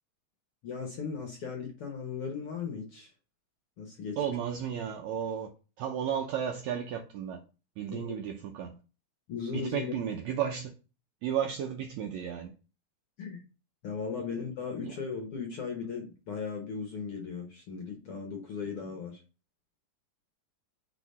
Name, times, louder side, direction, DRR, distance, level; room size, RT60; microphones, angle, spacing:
voice 1, 0.6-3.1 3.8-4.2 7.9-8.2 9.3-9.9 13.2-13.4 13.8-19.2, left 5 dB, 70° left, 1.3 m, -37 dB
voice 2, 4.2-5.5 5.8-7.4 7.8-8.8 9.5-10.7 11.2-12.5 14.8-14.9, right 8 dB, 90° right, 1.5 m, -33 dB
4.9 x 4.7 x 5.4 m
omnidirectional pair, 4.0 m